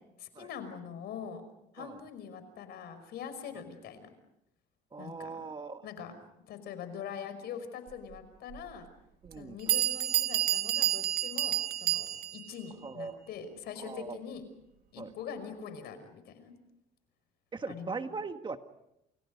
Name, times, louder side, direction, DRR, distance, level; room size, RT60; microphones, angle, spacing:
voice 1, 0.2-1.4 1.7-4.1 5.0-5.4 5.8-6.1 6.5-8.9 9.4-14.4 14.9-16.5 17.7-18.0, left 7 dB, 70° left, 10 dB, 5.5 m, -43 dB
voice 2, 4.9-5.8 9.2-9.6 12.8-13.1 13.8-14.2 15.0-15.1 17.5-18.6, right 4 dB, 30° right, 8 dB, 1.6 m, -39 dB
Bell, 8.5-8.6 9.3-9.4 9.7-12.5, right 13 dB, 65° right, 1.9 m, -29 dB
29.5 x 29.0 x 5.3 m, 0.83 s
cardioid pair, 110°, 17 cm